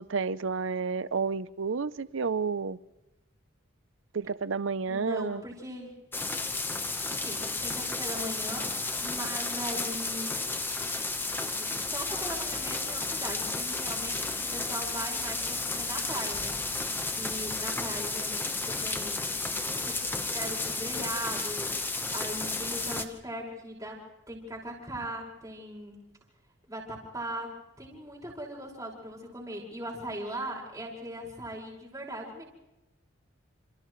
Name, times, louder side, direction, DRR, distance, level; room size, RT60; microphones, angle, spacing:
voice 1, 0.0-2.8 4.1-5.4, right 5 dB, 70° right, 0.6 m, -30 dB
voice 2, 4.9-5.9 7.1-8.7 9.0-10.3 11.6-16.6 17.2-19.3 19.9-20.0 20.3-24.0 24.3-26.0 26.7-32.4, right 1 dB, 15° right, 5.5 m, -39 dB
sound 1, 6.1-23.0, left 3 dB, 10° left, 1.0 m, -32 dB
29.0 x 28.5 x 3.2 m
head